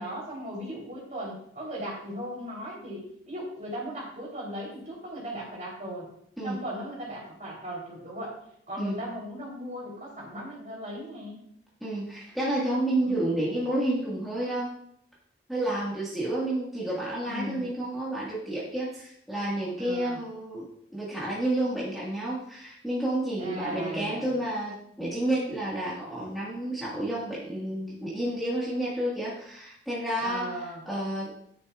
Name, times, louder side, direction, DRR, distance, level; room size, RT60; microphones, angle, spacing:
voice 1, 0.0-6.1 6.4-8.4 8.7-11.4 13.0-13.2 17.3-17.7 19.8-20.2 23.4-24.4 30.2-30.8, equal, 40° right, -3 dB, 3.2 m, -37 dB
voice 2, 11.8-14.7 15.5-20.7 20.9-31.3, right 1 dB, ahead, -8 dB, 1.6 m, -30 dB
9.8 x 8.1 x 2.4 m, 0.70 s
head